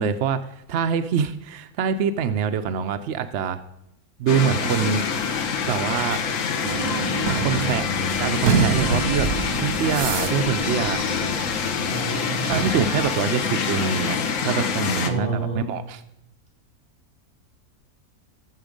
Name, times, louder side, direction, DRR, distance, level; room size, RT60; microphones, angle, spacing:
voice 1, 0.0-3.6 4.2-5.1 5.7-6.2 7.3-7.9 8.2-9.3 9.6-11.0 12.5-14.2 14.5-16.0, right 7 dB, 65° right, 9 dB, 0.7 m, -25 dB
sound 1, 4.3-15.1, left 6 dB, 60° left, 1.2 m, -26 dB
sound 2, 6.6-12.0 12.4-13.2, right 4 dB, 85° right, 1.7 m, -27 dB
voice 2, 11.9-12.5 15.0-15.6, right 2 dB, 25° right, -4 dB, 6.2 m, -29 dB
16.5 x 7.2 x 5.1 m, 0.81 s
omnidirectional pair, 1.7 m